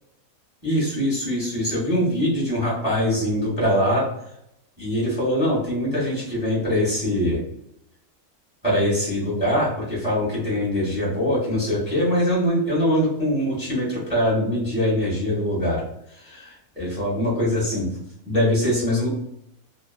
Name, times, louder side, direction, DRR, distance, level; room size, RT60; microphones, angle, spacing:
voice 1, 0.6-4.0 4.8-7.4 8.6-15.8 16.2-17.9 18.2-19.1, equal, 5° right, -6 dB, 1.2 m, -23 dB
2.9 x 2.5 x 2.4 m, 0.76 s
omnidirectional pair, 1.6 m